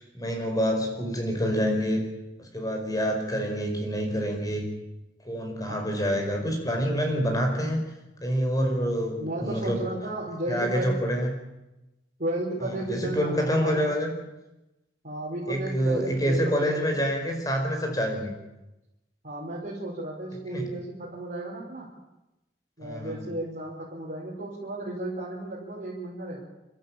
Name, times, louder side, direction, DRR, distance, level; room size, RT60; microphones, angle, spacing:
voice 1, 0.1-2.0 2.4-4.6 5.2-7.8 8.2-9.8 10.5-11.4 12.6-14.1 15.5-18.3 20.4-20.7 22.8-23.2, equal, 20° left, 3 dB, 5.0 m, -27 dB
voice 2, 9.2-11.0 12.2-13.8 15.0-17.0 19.2-21.9 22.8-26.4, right 1 dB, 50° right, -7 dB, 5.1 m, -34 dB
30.0 x 13.0 x 8.8 m, 0.98 s
head